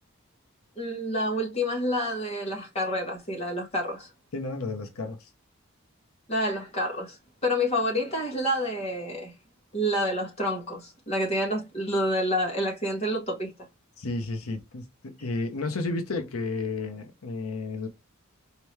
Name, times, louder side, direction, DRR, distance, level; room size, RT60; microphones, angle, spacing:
voice 1, 0.8-4.1 6.3-9.3 9.7-13.5, equal, 30° left, 1.8 m, -28 dB
voice 2, 4.3-5.3 14.0-17.9, left 3 dB, 85° left, 0.8 m, -32 dB
4.4 x 3.0 x 3.2 m
head